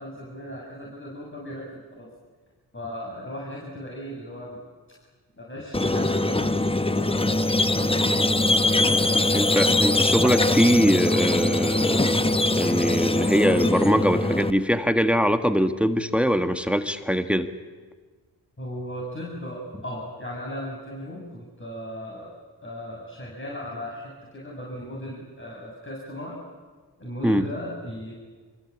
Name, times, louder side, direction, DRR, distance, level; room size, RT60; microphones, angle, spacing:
voice 1, 0.0-2.1 2.7-4.6 5.4-6.5 6.9-7.4 7.7-7.9 18.6-22.4 22.6-26.4 27.0-28.1, equal, 30° left, -4 dB, 7.5 m, -37 dB
Squeak, 5.7-14.5, left 2 dB, 15° left, 1.2 m, -22 dB
voice 2, 9.3-12.2 12.5-17.5 27.2-27.5, equal, 5° right, 8 dB, 1.6 m, -22 dB
25.5 x 23.0 x 8.7 m, 1.4 s
cardioid pair, 60°, 41 cm